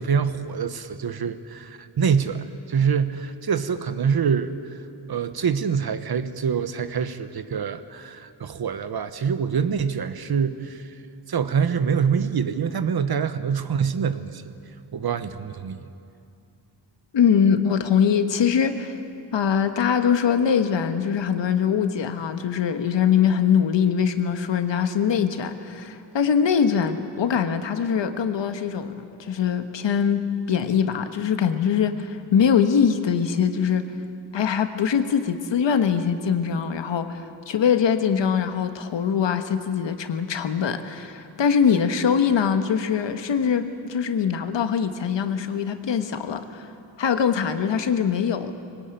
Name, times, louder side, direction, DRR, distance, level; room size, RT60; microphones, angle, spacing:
voice 1, 0.0-4.5 5.1-10.9 11.3-14.4 14.9-15.9, right 6 dB, 55° right, 11 dB, 1.1 m, -25 dB
voice 2, 17.1-19.0 19.3-28.9 29.2-33.9 34.3-46.7 47.0-48.5, left 7 dB, 75° left, 8 dB, 1.5 m, -22 dB
21.5 x 19.0 x 9.1 m, 2.5 s
wide cardioid pair, 110°, 44 cm